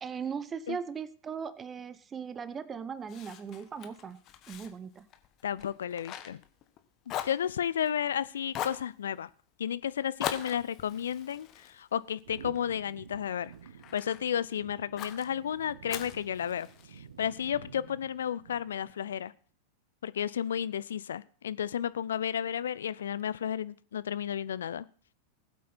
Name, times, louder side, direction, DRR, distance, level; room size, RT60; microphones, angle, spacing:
voice 1, 0.0-4.2 4.5-5.1, right 6 dB, 20° right, 17 dB, 0.9 m, -38 dB
Fire, 3.1-6.8 7.1-8.1 8.5-8.9 10.2-12.6 13.1-14.2 15.0-15.3 15.9-17.0, left 11 dB, 35° left, 1.4 m, -41 dB
voice 2, 5.4-6.4 7.2-9.3 9.6-13.5 13.9-19.3 20.0-24.9, left 9 dB, 65° left, 18 dB, 0.6 m, -33 dB
sound 1, 12.2-19.0, right 8 dB, 65° right, 0.9 m, -50 dB
19.5 x 8.4 x 4.3 m, 0.43 s
figure-of-eight pair, 90°, 0 cm